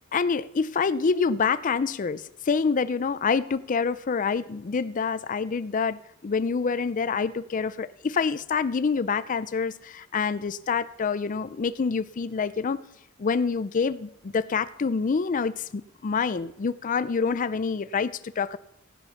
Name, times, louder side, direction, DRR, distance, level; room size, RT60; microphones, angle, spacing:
voice 1, 0.1-12.8 13.2-18.6, left 5 dB, 40° left, 0.4 m, -27 dB
15.5 x 9.7 x 5.7 m
head